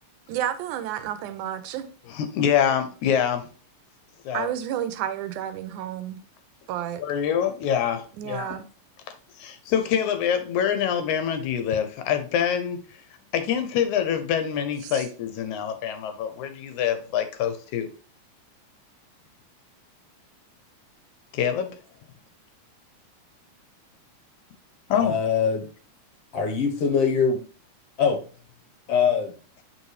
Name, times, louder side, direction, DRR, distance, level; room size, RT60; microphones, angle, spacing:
voice 1, 0.3-1.9 4.3-6.2 6.7-7.0 8.2-8.7 14.8-15.1, right 10 dB, 80° right, 2.2 m, -31 dB
voice 2, 2.1-3.4 4.3-4.5 7.0-8.5 9.4-12.8 13.3-17.9 21.3-21.7 24.9-25.1, left 8 dB, 75° left, 2.1 m, -25 dB
voice 3, 24.9-25.7 26.3-27.4 28.0-28.2 28.9-29.3, left 6 dB, 60° left, 1.8 m, -22 dB
7.6 x 5.1 x 3.2 m
omnidirectional pair, 3.6 m